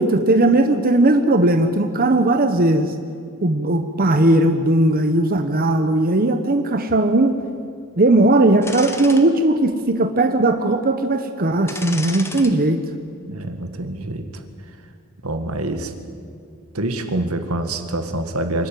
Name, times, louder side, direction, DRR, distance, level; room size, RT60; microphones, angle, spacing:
voice 1, 0.0-2.9 3.4-7.4 8.0-12.8, right 2 dB, 45° right, 7 dB, 1.0 m, -17 dB
sound 1, 8.6-9.2 9.7-9.8 11.7-12.5 12.9-13.1, left 2 dB, 10° left, 1.5 m, -32 dB
voice 2, 13.3-14.4 15.2-16.0 16.7-18.7, right 1 dB, 85° right, 7 dB, 1.9 m, -26 dB
25.5 x 12.5 x 9.3 m, 2.3 s
head